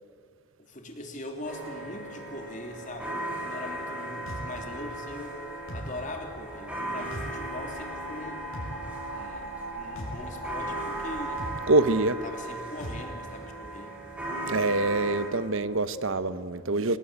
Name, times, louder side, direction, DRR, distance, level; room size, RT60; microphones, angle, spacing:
voice 1, 0.7-5.4 5.7-8.4 9.1-11.4 12.2-14.0, left 1 dB, 35° left, 3 dB, 3.1 m, -41 dB
sound 1, 1.4-15.3, right 1 dB, 5° right, 6.2 m, -37 dB
sound 2, 4.3-4.5 5.7-5.9 7.1-7.3 8.5-8.7 10.0-10.2 11.4-11.6 12.8-13.0, equal, 60° left, 6.1 m, -36 dB
sound 3, 6.5-11.4, equal, 10° left, 5.0 m, -41 dB
voice 2, 11.7-12.2 14.5-17.0, right 2 dB, 60° right, 13 dB, 1.0 m, -25 dB
28.0 x 19.5 x 8.7 m, 2.2 s
head